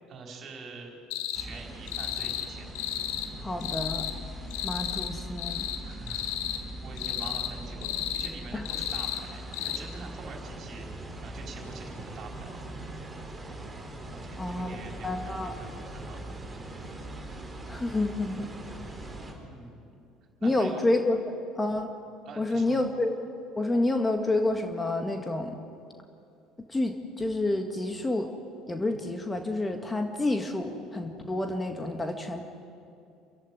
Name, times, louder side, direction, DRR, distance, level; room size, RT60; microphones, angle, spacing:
voice 1, 0.1-0.9 1.3-2.7 5.8-6.3 6.8-10.8 11.1-12.6 14.1-16.2 19.3-19.8 20.4-20.8 22.2-22.8, right 4 dB, 45° right, 1 dB, 4.7 m, -45 dB
sound 1, 1.1-1.4 1.9-2.5 2.7-3.3 3.6-4.1 4.5-5.1 5.4-5.8 6.1-6.6 7.0-7.5 7.8-8.3 8.6-9.2 9.5-9.8, left 11 dB, 60° left, 1.4 m, -33 dB
sound 2, 1.3-19.3, right 1 dB, 10° right, 5.0 m, -41 dB
voice 2, 3.4-4.0 4.6-5.7 8.5-8.6 14.4-14.8 15.0-15.5 17.7-18.5 20.4-21.9 22.4-23.1 23.5-25.5 26.7-28.3 28.7-32.4, left 2 dB, 15° left, 5 dB, 1.9 m, -29 dB
27.5 x 15.5 x 9.5 m, 2.5 s
figure-of-eight pair, 60°, 0 cm